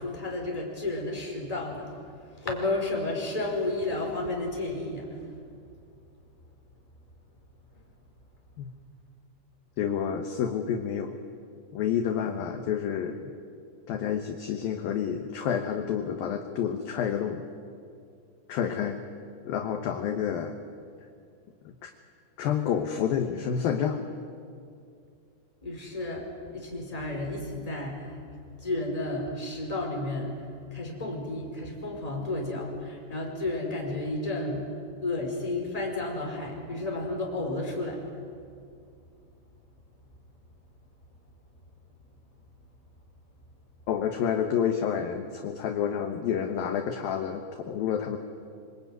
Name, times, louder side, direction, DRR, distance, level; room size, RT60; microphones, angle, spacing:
voice 1, 0.0-2.0 2.3-5.1 25.6-28.2 28.6-30.4 30.7-34.7 35.0-38.0, left 2 dB, 10° left, 0 dB, 4.6 m, -32 dB
voice 2, 9.8-11.2 11.7-13.3 13.9-17.4 18.5-19.0 19.5-20.5 21.7-21.9 22.4-24.0 43.9-48.2, left 8 dB, 65° left, 5 dB, 2.6 m, -29 dB
26.0 x 24.0 x 9.4 m, 2.4 s
omnidirectional pair, 5.2 m